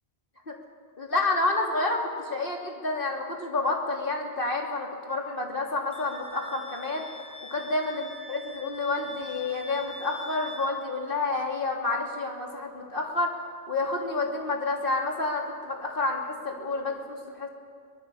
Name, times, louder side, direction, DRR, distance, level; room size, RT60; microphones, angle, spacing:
voice 1, 1.0-7.1 7.5-13.3 13.7-17.5, left 3 dB, 60° left, 0 dB, 3.4 m, -29 dB
Wind instrument woodwind instrument, 5.9-10.7, left 1 dB, 10° left, 4.4 m, -44 dB
24.5 x 19.5 x 7.0 m, 2.3 s
omnidirectional pair, 1.1 m